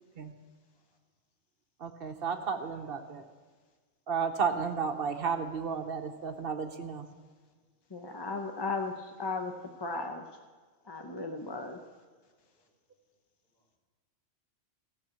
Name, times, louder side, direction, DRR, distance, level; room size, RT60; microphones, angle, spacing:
voice 1, 1.8-3.3 4.1-7.1, right 6 dB, 60° right, 7 dB, 0.9 m, -33 dB
voice 2, 7.9-9.5 9.8-10.2 10.8-11.8, left 3 dB, 25° left, 4 dB, 0.6 m, -36 dB
voice 3, 12.0-12.7 13.5-13.7, equal, 60° left, -4 dB, 3.2 m, -76 dB
14.5 x 6.2 x 7.4 m, 1.4 s
omnidirectional pair, 1.1 m